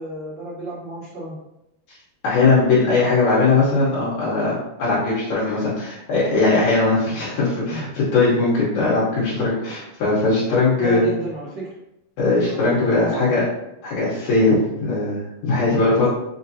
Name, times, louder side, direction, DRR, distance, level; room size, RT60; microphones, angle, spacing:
voice 1, 0.0-1.4 10.8-11.7 12.5-13.5, right 2 dB, 40° right, -8 dB, 1.2 m, -32 dB
voice 2, 2.2-11.1 12.2-13.5 13.8-16.1, left 3 dB, 75° left, -8 dB, 2.4 m, -19 dB
5.2 x 2.5 x 2.7 m, 0.87 s
omnidirectional pair, 3.4 m